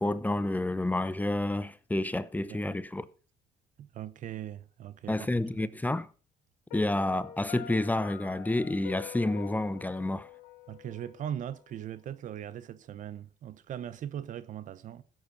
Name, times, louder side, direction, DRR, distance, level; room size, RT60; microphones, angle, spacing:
voice 1, 0.0-3.1 5.1-6.1 6.7-10.3, left 2 dB, 10° left, 0.8 m, -29 dB
voice 2, 3.8-5.3 5.6-5.7 10.7-15.0, right 10 dB, 60° right, 0.9 m, -40 dB
Piano, 6.7-11.6, left 11 dB, 80° left, 1.2 m, -46 dB
15.0 x 8.0 x 5.2 m
supercardioid pair, 85°, 15 cm